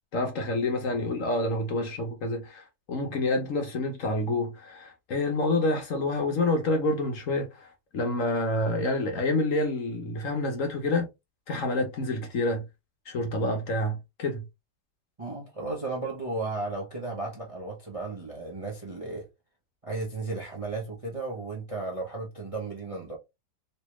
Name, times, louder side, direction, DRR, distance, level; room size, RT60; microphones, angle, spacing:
voice 1, 0.1-11.1 11.5-12.6 13.1-14.4, left 2 dB, 55° left, 1.0 m, -28 dB
voice 2, 15.2-19.3 19.8-23.2, right 3 dB, 30° right, 0.6 m, -34 dB
3.2 x 2.7 x 3.0 m
omnidirectional pair, 1.8 m